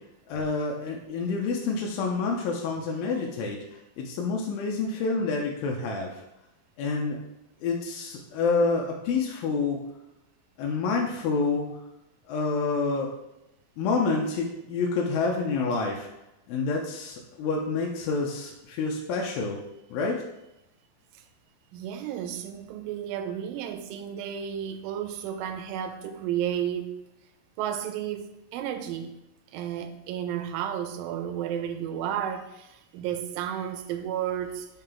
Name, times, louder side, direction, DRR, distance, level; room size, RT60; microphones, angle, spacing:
voice 1, 0.3-3.6 4.0-6.2 6.8-7.2 7.6-9.8 10.6-11.7 12.3-13.1 13.8-16.1 16.5-19.6 19.9-20.2, left 4 dB, 85° left, -1 dB, 2.4 m, -28 dB
voice 2, 21.7-26.9 27.6-29.2 29.5-34.7, right 9 dB, 80° right, 7 dB, 2.2 m, -32 dB
5.7 x 3.8 x 4.2 m, 0.89 s
omnidirectional pair, 4.2 m